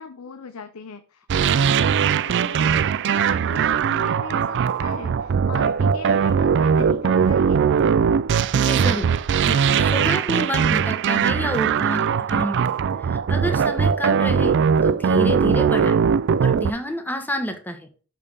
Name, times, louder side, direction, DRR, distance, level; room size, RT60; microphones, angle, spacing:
voice 1, 0.0-7.6, left 5 dB, 75° left, 9 dB, 0.6 m, -39 dB
sound 1, 1.3-16.7, right 7 dB, 55° right, 0.4 m, -20 dB
voice 2, 8.5-9.1 9.5-12.8 13.1-16.0 16.4-17.9, equal, 10° left, 6 dB, 1.2 m, -29 dB
6.6 x 5.4 x 5.4 m, 0.37 s
head